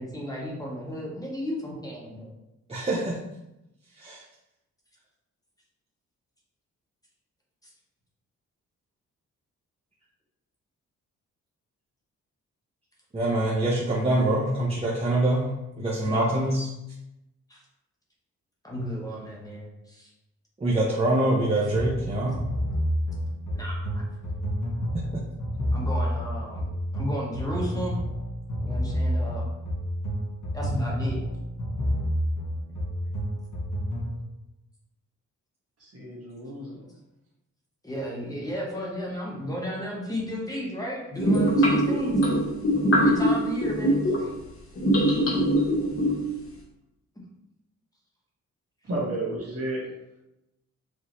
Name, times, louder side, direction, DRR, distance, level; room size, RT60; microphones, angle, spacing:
voice 1, 0.0-2.3 7.6-7.7 16.0-16.4 17.5-17.6 18.6-20.1 23.5-24.0 25.7-28.0 28.6-29.5 30.5-31.2 37.8-42.2 43.0-44.3, equal, 10° left, -4 dB, 1.2 m, -33 dB
voice 2, 2.7-3.2 4.0-4.2 13.1-16.7 20.6-22.4 25.1-25.2, right 1 dB, 20° right, -7 dB, 0.9 m, -25 dB
sound 1, 21.7-34.2, equal, 85° left, 1.2 m, -29 dB
voice 3, 35.8-36.9 48.8-49.9, right 1 dB, 55° right, -4 dB, 1.5 m, -32 dB
sound 2, 41.2-44.3 44.8-46.3, equal, 50° left, 1.1 m, -22 dB
5.1 x 2.8 x 3.1 m, 0.90 s
cardioid pair, 100°, 30 cm